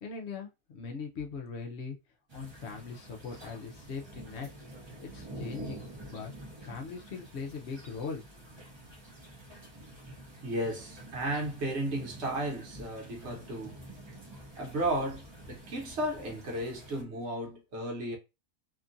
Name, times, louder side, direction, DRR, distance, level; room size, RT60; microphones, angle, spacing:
voice 1, 0.0-2.0 2.3-4.5 5.0-5.8 6.1-6.3 6.6-8.4, left 5 dB, 60° left, 0.8 m, -40 dB
sound 1, 2.3-17.0, right 1 dB, 25° right, 0.6 m, -48 dB
voice 2, 10.4-13.8 14.6-18.2, right 1 dB, 55° right, 1.3 m, -34 dB
2.9 x 2.4 x 2.5 m
omnidirectional pair, 1.5 m